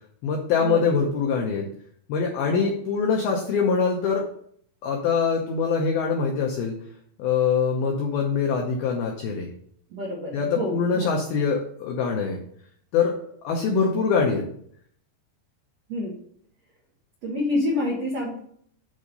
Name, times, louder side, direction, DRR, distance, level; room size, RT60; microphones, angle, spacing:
voice 1, 0.2-1.7 2.1-4.2 4.8-6.8 7.2-9.5 10.3-12.4 12.9-13.1 13.4-14.5, left 5 dB, 85° left, 1 dB, 2.1 m, -23 dB
voice 2, 9.9-11.1 15.9-16.1 17.2-18.4, left 1 dB, 90° right, -4 dB, 1.4 m, -28 dB
9.1 x 3.7 x 5.3 m, 0.63 s
omnidirectional pair, 5.6 m